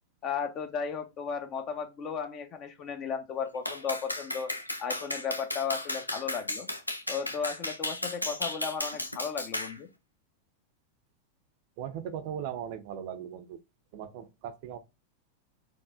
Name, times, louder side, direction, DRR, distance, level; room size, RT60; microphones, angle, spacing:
voice 1, 0.2-4.5 4.8-6.7 7.1-9.9, left 6 dB, 35° left, 0.8 m, -35 dB
Clapping, 3.7-9.8, left 1 dB, 85° left, 0.5 m, -34 dB
voice 2, 11.8-13.6 13.9-14.8, right 9 dB, 50° right, 0.6 m, -38 dB
4.5 x 2.7 x 2.4 m
figure-of-eight pair, 90°, 0 cm